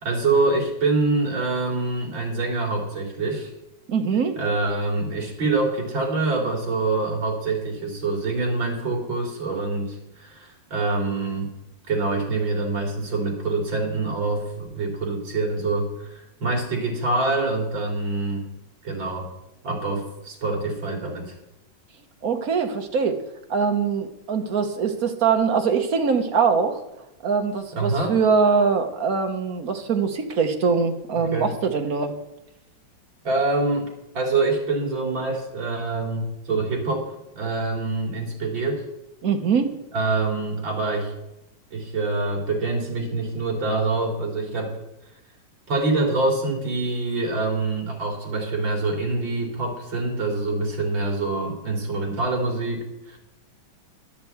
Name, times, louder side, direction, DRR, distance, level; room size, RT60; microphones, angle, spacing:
voice 1, 0.0-3.5 4.4-11.5 11.9-18.5 18.8-19.3 19.6-21.3 27.7-28.2 31.1-31.5 33.2-37.1 37.4-38.8 39.9-41.1 41.7-44.8 45.7-53.2, right 3 dB, 65° right, 1 dB, 3.7 m, -25 dB
voice 2, 3.9-4.4 22.2-23.2 23.5-26.8 27.2-32.1 39.2-39.7, right 5 dB, 50° right, 5 dB, 1.5 m, -22 dB
11.5 x 7.0 x 7.9 m, 0.90 s
omnidirectional pair, 2.3 m